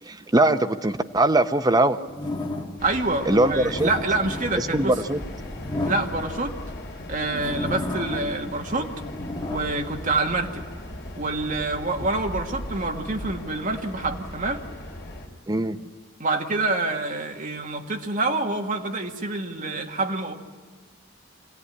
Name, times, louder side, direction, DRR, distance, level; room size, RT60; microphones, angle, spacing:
voice 1, 0.0-2.0 3.3-3.9 4.6-5.2 15.5-15.8, right 2 dB, 20° right, 8 dB, 0.7 m, -21 dB
sound 1, 2.1-2.9 3.5-6.7 7.1-8.5 8.8-10.7 11.3-13.4, left 1 dB, 25° left, 1.6 m, -34 dB
sound 2, 2.8-15.3, left 1 dB, 55° left, 3.2 m, -38 dB
voice 2, 2.8-4.9 5.9-6.6 7.1-8.9 9.5-10.6 11.2-14.6 16.2-20.3, right 2 dB, 40° right, 3 dB, 1.7 m, -27 dB
25.0 x 17.0 x 9.7 m, 1.5 s
head